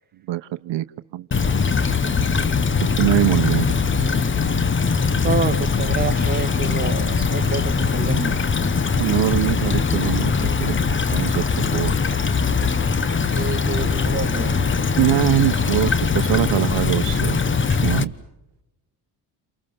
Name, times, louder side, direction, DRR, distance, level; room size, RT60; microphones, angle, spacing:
voice 1, 0.3-0.9 1.1-1.3 3.0-3.7 9.0-10.8 11.1-11.9 15.0-18.1, right 15 dB, 75° right, 11 dB, 0.9 m, -22 dB
Stream / Trickle dribble, 1.3-18.0, left 5 dB, 25° left, 1.0 m, -21 dB
voice 2, 5.2-8.4 13.3-14.6, right 4 dB, 20° right, 5 dB, 1.7 m, -27 dB
30.0 x 29.0 x 5.8 m, 0.97 s
cardioid pair, 110°, 43 cm